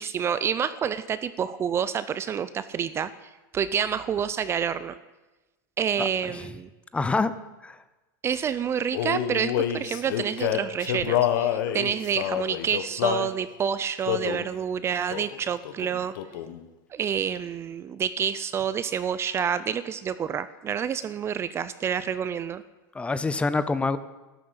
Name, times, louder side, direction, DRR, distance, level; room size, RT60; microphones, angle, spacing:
voice 1, 0.0-5.0 5.8-6.7 8.2-16.1 16.9-22.6, right 8 dB, 25° right, 14 dB, 0.6 m, -28 dB
voice 2, 6.0-6.5 6.9-7.3 7.6-7.8 22.9-24.0, left 3 dB, 10° left, 14 dB, 0.7 m, -26 dB
Male singing, 8.9-13.3 14.0-14.5 15.1-15.4 15.6-16.6, left 10 dB, 70° left, 1.4 m, -27 dB
13.0 x 12.0 x 7.9 m, 1.1 s
supercardioid pair, 135°, 11 cm